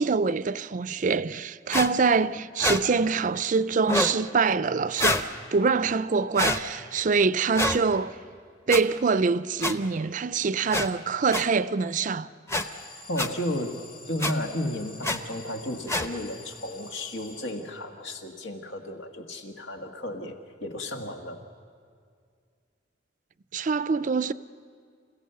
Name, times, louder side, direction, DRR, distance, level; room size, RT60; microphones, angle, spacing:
voice 1, 0.0-5.2 5.5-8.1 8.7-12.3 23.5-24.3, right 4 dB, 40° right, 0.4 m, -25 dB
sound 1, 1.7-1.9 2.6-2.8 3.8-4.2 5.0-5.3 6.3-6.6 7.5-7.8 8.7-8.8 9.6-9.7 10.7-10.9 11.3-11.4 12.5-12.6 13.2-13.3 14.2-14.3 15.0-15.2 15.9-16.1, left 1 dB, 15° left, 0.8 m, -25 dB
Alarm, 12.5-18.1, left 2 dB, 45° left, 1.9 m, -48 dB
voice 2, 13.1-13.8 14.1-21.4, left 1 dB, 85° left, 1.8 m, -33 dB
28.5 x 16.5 x 6.8 m
head